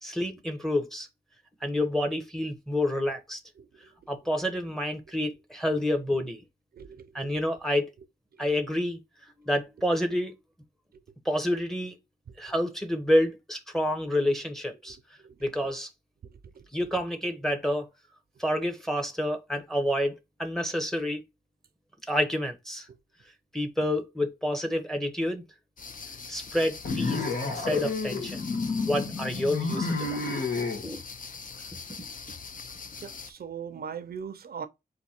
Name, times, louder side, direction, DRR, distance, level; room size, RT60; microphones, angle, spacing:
voice 1, 0.0-1.1 1.6-3.4 4.1-6.4 7.1-7.9 8.4-9.0 9.4-10.4 11.2-12.0 12.4-15.0 15.4-15.9 16.7-17.9 18.4-21.2 22.1-22.9 23.5-25.4 26.3-28.4 28.9-30.2 30.8-31.0, left 1 dB, 5° left, 0.7 m, -28 dB
voice 2, 6.7-7.3 15.2-15.3 16.5-16.6 33.0-34.7, right 7 dB, 75° right, 0.5 m, -39 dB
sound 1, 25.8-33.3, left 5 dB, 60° left, 0.6 m, -42 dB
sound 2, 26.8-30.8, left 3 dB, 80° left, 1.2 m, -30 dB
4.0 x 2.6 x 4.3 m
wide cardioid pair, 150°, 16 cm